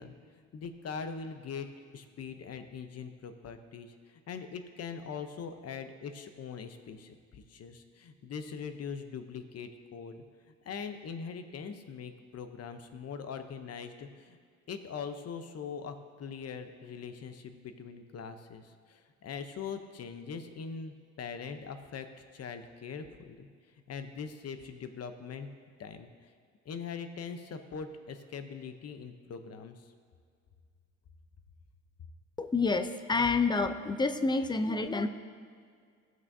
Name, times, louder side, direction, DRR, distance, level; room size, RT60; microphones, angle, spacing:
voice 1, 0.0-1.7 1.9-10.2 10.6-14.4 14.7-22.1 22.3-23.5 23.9-25.5 25.8-26.3 26.6-29.9, left 6 dB, 55° left, 8 dB, 0.8 m, -42 dB
voice 2, 32.4-35.1, left 3 dB, 15° left, 9 dB, 0.6 m, -28 dB
17.5 x 6.2 x 2.7 m, 2.1 s
cardioid pair, 90°, 30 cm